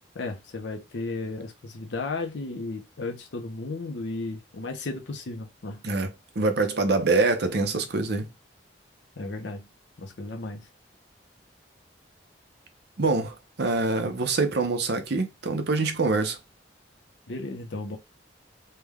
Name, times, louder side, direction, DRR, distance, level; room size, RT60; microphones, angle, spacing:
voice 1, 0.1-5.8 9.2-9.7 10.0-10.7 17.3-18.0, left 3 dB, 75° left, 0.7 m, -34 dB
voice 2, 6.4-8.3 13.0-16.4, right 3 dB, 65° right, 0.7 m, -25 dB
3.2 x 2.3 x 3.4 m
head